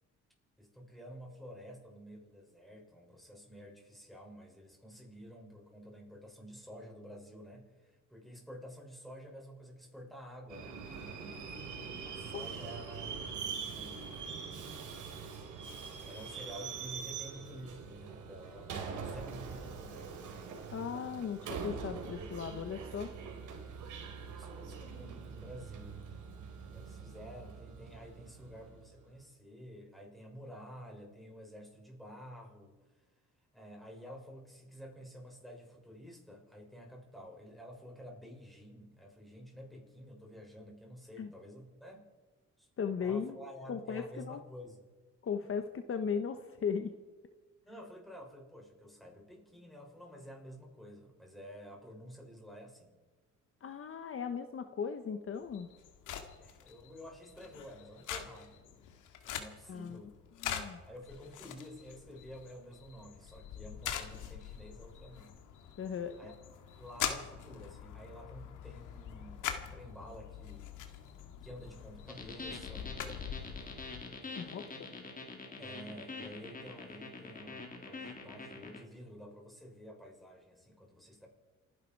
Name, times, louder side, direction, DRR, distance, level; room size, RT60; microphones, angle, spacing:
voice 1, 0.6-10.8 12.0-14.3 14.5-15.4 16.0-20.2 23.9-26.2 26.6-33.0 33.5-42.1 42.6-42.7 43.0-44.8 45.4-45.5 47.6-53.0 56.4-58.6 59.2-60.1 60.9-65.3 66.2-66.3 66.8-70.8 71.4-73.0 74.2-74.9 75.6-81.3, equal, ahead, -1 dB, 6.2 m, -51 dB
Subway metro underground, 10.5-28.9, right 6 dB, 80° right, 3.3 m, -43 dB
voice 2, 20.7-23.1 41.2-41.3 42.8-43.4 43.7-44.4 45.2-46.9 53.6-55.7 59.7-60.0 60.4-60.8 65.8-66.1 74.4-74.9, left 6 dB, 45° left, 8 dB, 1.1 m, -37 dB
sound 1, 55.4-74.1, left 9 dB, 85° left, 2.1 m, -44 dB
sound 2, 72.1-78.8, left 3 dB, 30° left, 3.5 m, -45 dB
28.5 x 11.0 x 4.6 m, 1.3 s
cardioid pair, 90°, 30 cm